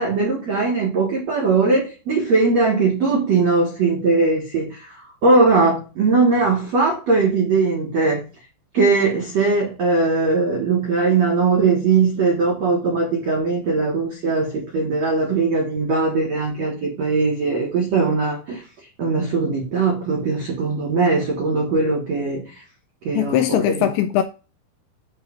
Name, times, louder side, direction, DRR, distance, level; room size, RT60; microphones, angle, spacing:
voice 1, 0.0-5.0 5.2-8.2 8.7-18.6 19.0-22.4 23.0-23.6, right 3 dB, 75° right, 1.5 m, -20 dB
voice 2, 23.1-24.2, left 12 dB, 85° left, 2.6 m, -20 dB
8.8 x 3.2 x 5.2 m
omnidirectional pair, 5.7 m